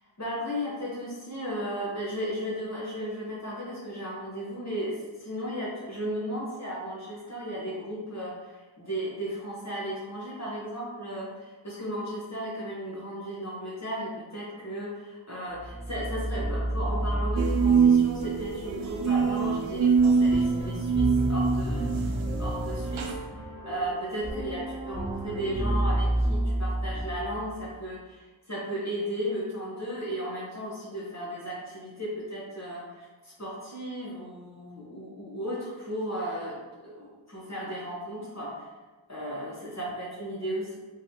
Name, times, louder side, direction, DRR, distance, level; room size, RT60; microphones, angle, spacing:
voice 1, 0.2-22.1 22.4-23.0 23.6-36.6 36.8-38.7 39.1-40.8, equal, 35° left, -6 dB, 1.0 m, -35 dB
sound 1, 15.5-27.6, right 1 dB, 10° right, 0.9 m, -31 dB
sound 2, 17.4-23.1, right 5 dB, 75° right, 0.6 m, -24 dB
3.8 x 3.3 x 2.8 m, 1.2 s
wide cardioid pair, 75°, 48 cm